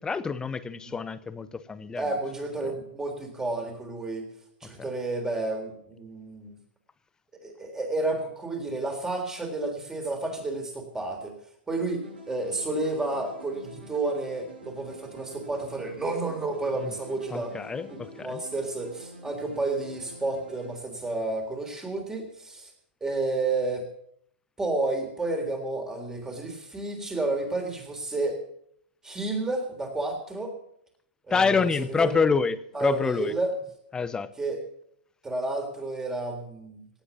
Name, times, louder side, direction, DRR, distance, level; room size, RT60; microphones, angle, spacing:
voice 1, 0.0-2.0 4.8-4.9 16.8-16.9 17.3-18.4 31.3-33.3 33.9-34.3, left 5 dB, 15° left, 0.8 m, -27 dB
voice 2, 2.0-4.3 4.6-6.6 7.4-11.4 11.7-17.5 17.9-22.7 23.0-23.9 24.6-28.4 29.0-30.5 31.3-32.2 32.7-33.5 34.4-34.6 35.2-36.8, right 2 dB, 10° right, 3.7 m, -31 dB
sound 1, 12.0-20.7, equal, 85° right, 7.4 m, -46 dB
18.0 x 8.2 x 7.3 m
hypercardioid pair, 120°, 5 cm